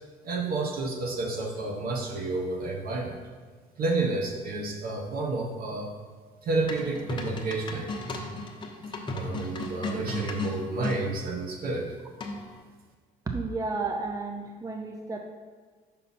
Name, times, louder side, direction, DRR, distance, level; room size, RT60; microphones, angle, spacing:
voice 1, 0.2-3.2 3.8-5.9 6.4-7.9 9.1-11.9, right 3 dB, 60° right, 2 dB, 1.2 m, -30 dB
sound 1, 6.7-11.0 12.2-12.6, left 2 dB, 25° left, 0.9 m, -35 dB
voice 2, 13.3-15.2, right 3 dB, 20° right, 3 dB, 0.6 m, -32 dB
5.7 x 5.6 x 4.2 m, 1.5 s
cardioid pair, 110°, 17 cm